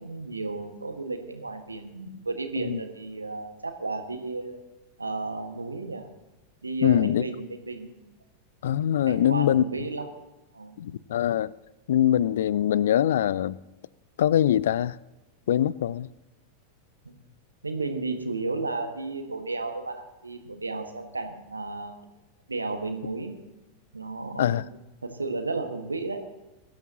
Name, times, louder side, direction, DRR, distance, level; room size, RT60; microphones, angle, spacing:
voice 1, 0.0-4.6 5.0-6.1 6.6-8.0 9.0-10.1 10.5-10.8 17.0-17.2 17.6-22.0 22.5-23.4 23.9-26.2, right 3 dB, 80° right, 1.7 m, -33 dB
voice 2, 6.8-7.2 8.6-9.6 10.8-11.5 11.9-13.6 14.2-15.0 15.5-16.1 24.4-24.6, left 11 dB, 60° left, 0.4 m, -23 dB
22.5 x 12.5 x 3.0 m
figure-of-eight pair, 90°, 0 cm